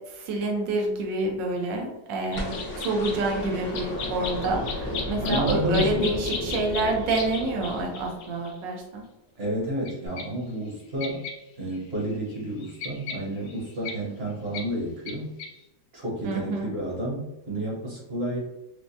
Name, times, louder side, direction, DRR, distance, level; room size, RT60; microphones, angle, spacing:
voice 1, 0.1-9.0 16.2-16.7, right 2 dB, 80° right, 1 dB, 1.4 m, -28 dB
sound 1, 2.3-8.6 9.8-9.9 10.2-10.3 11.0-11.3 11.7-11.8 12.1-13.9 14.5-14.6 15.1-15.2 15.4-15.5, left 5 dB, 70° left, 1.0 m, -35 dB
sound 2, 2.3-8.5 10.1-10.2, equal, 20° left, 0.5 m, -34 dB
voice 2, 5.2-6.2 9.4-11.2 11.6-15.3 15.9-18.4, equal, 40° right, -4 dB, 1.0 m, -30 dB
4.7 x 2.1 x 2.6 m, 0.93 s
omnidirectional pair, 2.0 m